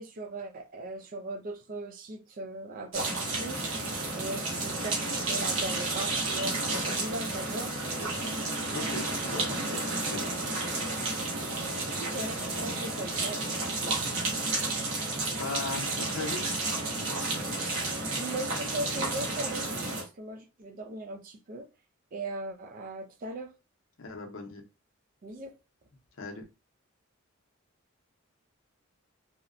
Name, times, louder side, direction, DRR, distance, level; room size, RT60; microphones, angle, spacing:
voice 1, 0.0-3.7 4.2-7.7 11.9-13.4 18.2-19.8 20.2-21.7 22.1-23.5 25.2-25.5, right 2 dB, 40° right, 0.4 m, -38 dB
sound 1, 2.9-20.0, right 2 dB, 70° right, 0.9 m, -31 dB
voice 2, 8.7-10.5 15.4-16.7 24.0-24.6 26.2-26.4, left 3 dB, 65° left, 0.6 m, -38 dB
2.8 x 2.1 x 2.4 m
head